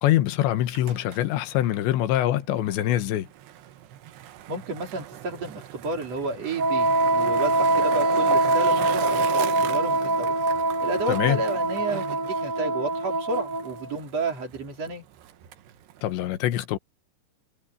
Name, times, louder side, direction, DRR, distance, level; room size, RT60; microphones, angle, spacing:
voice 1, 0.0-3.3 11.1-11.4 16.0-16.8, left 13 dB, 70° left, 3.2 m, -24 dB
Skateboard, 0.5-16.3, right 12 dB, 65° right, 3.1 m, -40 dB
voice 2, 4.5-10.3 10.8-15.0, right 2 dB, 35° right, 4.7 m, -31 dB
Wind instrument woodwind instrument, 6.6-13.9, right 2 dB, 85° right, 1.2 m, -24 dB
omnidirectional pair, 5.7 m